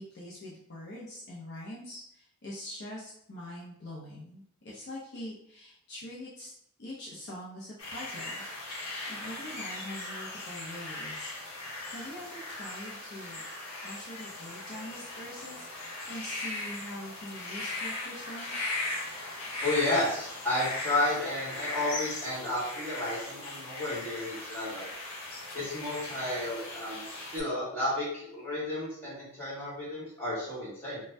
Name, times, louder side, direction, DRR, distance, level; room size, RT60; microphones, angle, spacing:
voice 1, 0.0-6.5 6.8-11.3 11.9-13.4 13.8-18.5, left 1 dB, 50° left, -6 dB, 0.5 m, -44 dB
sound 1, 7.8-27.4, left 2 dB, 80° left, 0.8 m, -38 dB
voice 2, 19.6-24.9 25.5-31.0, left 1 dB, 10° left, -9 dB, 1.3 m, -32 dB
2.5 x 2.2 x 3.2 m, 0.72 s
head